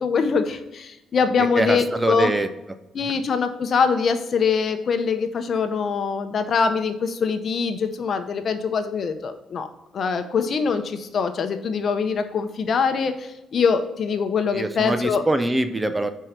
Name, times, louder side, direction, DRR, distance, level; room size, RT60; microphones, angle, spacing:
voice 1, 0.0-2.3 2.9-9.7 9.9-15.2, left 5 dB, 55° left, 8 dB, 0.8 m, -23 dB
voice 2, 1.4-2.5 14.5-16.1, right 2 dB, 15° right, 10 dB, 0.6 m, -23 dB
5.7 x 4.6 x 5.1 m, 0.98 s
cardioid pair, 90°, 0 cm